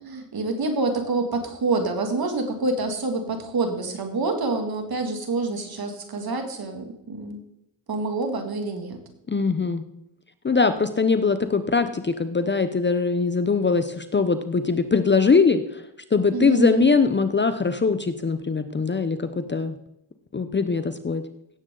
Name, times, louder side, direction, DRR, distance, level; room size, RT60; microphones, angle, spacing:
voice 1, 0.0-7.4 7.9-9.0 16.3-16.9, right 3 dB, 50° right, 4 dB, 2.5 m, -27 dB
voice 2, 9.3-9.8 10.4-15.8 16.1-19.8 20.3-21.2, left 4 dB, 25° left, 10 dB, 0.7 m, -22 dB
17.0 x 7.5 x 3.9 m, 0.82 s
cardioid pair, 75°, 47 cm